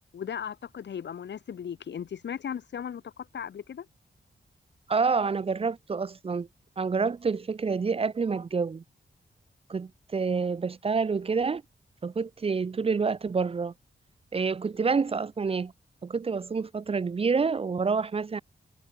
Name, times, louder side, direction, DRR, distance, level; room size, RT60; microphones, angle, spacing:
voice 1, 0.1-3.9, left 8 dB, 80° left, 1.7 m, -37 dB
voice 2, 4.9-6.5 6.8-8.8 9.7-11.6 12.0-13.7 14.3-15.7 16.0-18.4, right 5 dB, 30° right, 0.6 m, -28 dB
wide cardioid pair, 170°, 18 cm